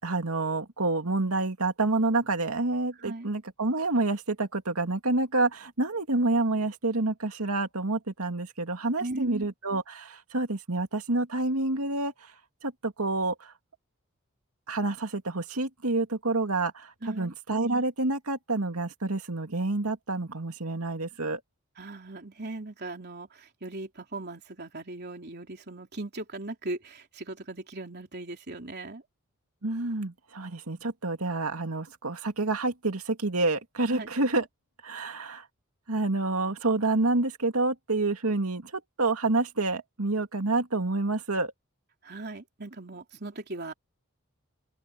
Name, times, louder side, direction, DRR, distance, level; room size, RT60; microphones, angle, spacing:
voice 1, 0.0-12.3 12.6-13.5 14.7-21.4 29.6-34.5 34.8-35.5 35.9-41.5, right 2 dB, 85° right, 2.4 m, -28 dB
voice 2, 3.0-3.3 9.0-9.5 17.0-17.3 21.8-29.0 33.9-34.1 42.0-43.7, right 2 dB, 50° right, 3.5 m, -38 dB
open air
head